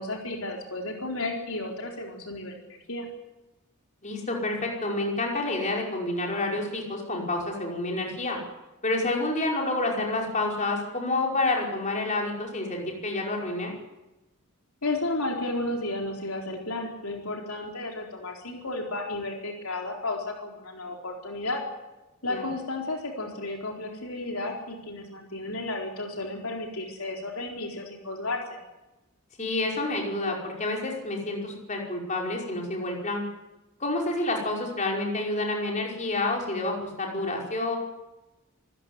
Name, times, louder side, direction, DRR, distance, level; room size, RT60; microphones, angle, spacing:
voice 1, 0.0-3.1 14.8-21.6 22.2-28.6, left 2 dB, 70° left, 1 dB, 4.3 m, -33 dB
voice 2, 4.0-8.4 8.8-13.7 22.3-22.4 29.4-33.2 33.8-37.8, left 2 dB, 35° left, 0 dB, 5.3 m, -29 dB
26.0 x 15.0 x 9.7 m, 1.0 s
head